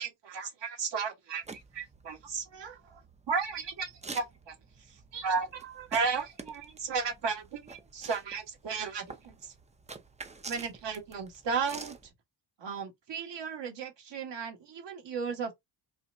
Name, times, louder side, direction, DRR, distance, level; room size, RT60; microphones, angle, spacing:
voice 1, 0.0-3.0 3.3-4.5 4.9-9.5 10.5-12.0 12.6-15.5, right 5 dB, 65° right, 1.5 m, -35 dB
sound 1, 1.4-12.1, right 3 dB, 15° right, 0.5 m, -48 dB
4.2 x 2.5 x 2.6 m
cardioid pair, 80°, 46 cm